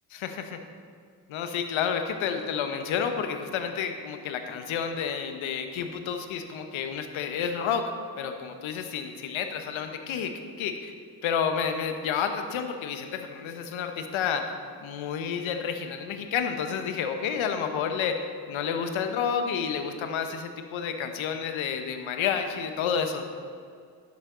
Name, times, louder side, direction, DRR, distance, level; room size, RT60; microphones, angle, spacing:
voice 1, 0.1-0.6 1.3-10.9 11.2-14.5 14.8-23.2, left 7 dB, 70° left, 7 dB, 1.2 m, -30 dB
12.5 x 11.0 x 3.9 m, 2.2 s
hypercardioid pair, 40°, 49 cm